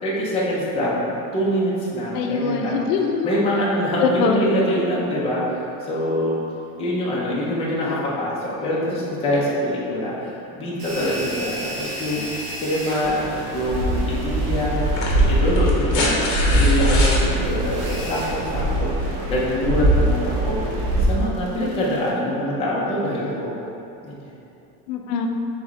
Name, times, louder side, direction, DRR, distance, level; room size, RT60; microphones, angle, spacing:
voice 1, 0.0-2.8 3.2-6.3 6.8-12.2 12.6-20.6 21.0-23.6 24.0-24.3, equal, 15° left, -6 dB, 0.4 m, -24 dB
voice 2, 2.1-3.3 4.0-4.4 24.9-25.3, left 5 dB, 75° left, 3 dB, 0.5 m, -22 dB
sound 1, 10.8-22.1, right 1 dB, 80° right, 1.2 m, -36 dB
sound 2, 13.0-21.1, right 1 dB, 40° right, 0.6 m, -22 dB
sound 3, 13.7-13.8 14.8-17.2 18.8-18.9, left 2 dB, 40° left, 0.8 m, -26 dB
3.4 x 3.1 x 3.6 m, 2.9 s
supercardioid pair, 135°, 47 cm